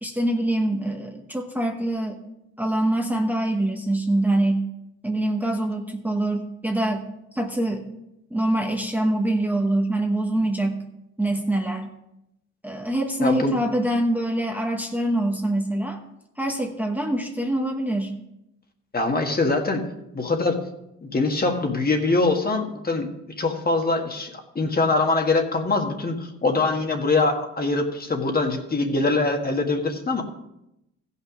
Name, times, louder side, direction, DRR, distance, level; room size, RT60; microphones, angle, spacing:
voice 1, 0.0-2.2 2.6-4.7 5.0-7.9 8.3-10.8 11.2-11.9 12.6-16.0 16.4-18.2, right 1 dB, 5° right, 1 dB, 1.1 m, -24 dB
voice 2, 13.2-13.6 18.9-19.8 20.1-20.6 21.0-23.1 23.4-30.2, left 3 dB, 30° left, 4 dB, 1.6 m, -23 dB
15.0 x 5.7 x 5.0 m, 0.86 s
cardioid pair, 90°, 30 cm